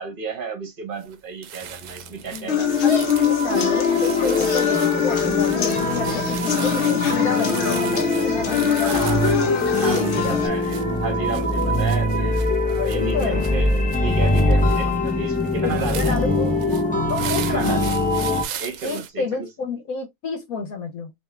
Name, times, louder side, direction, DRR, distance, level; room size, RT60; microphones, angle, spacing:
voice 1, 0.0-3.3 8.8-9.3 9.8-16.3 17.4-17.9 18.6-19.5, right 4 dB, 40° right, 1.1 m, -32 dB
sound 1, 1.0-1.2 1.4-19.1, right 10 dB, 70° right, 0.9 m, -38 dB
sound 2, 1.6-18.4, left 1 dB, 10° left, 0.4 m, -23 dB
sound 3, 2.5-10.5, left 7 dB, 55° left, 1.0 m, -22 dB
voice 2, 2.8-9.4 9.8-10.4 12.7-13.4 14.8-15.0 15.6-16.8 17.1-17.8 18.8-21.1, left 5 dB, 80° left, 1.3 m, -30 dB
3.5 x 2.9 x 3.3 m
omnidirectional pair, 1.5 m